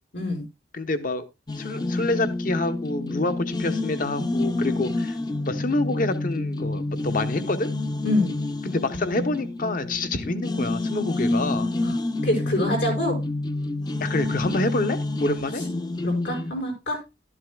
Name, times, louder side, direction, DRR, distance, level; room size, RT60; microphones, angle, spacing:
voice 1, 0.1-0.5 8.0-8.3 11.8-11.9 12.2-13.2 16.0-17.0, left 1 dB, 90° left, 5.4 m, -25 dB
voice 2, 0.7-1.2 1.6-5.2 5.4-7.7 8.6-11.7 14.0-15.6, left 2 dB, 50° left, 0.9 m, -27 dB
sound 1, 1.5-16.5, left 2 dB, 25° left, 0.5 m, -28 dB
12.5 x 11.0 x 2.3 m
head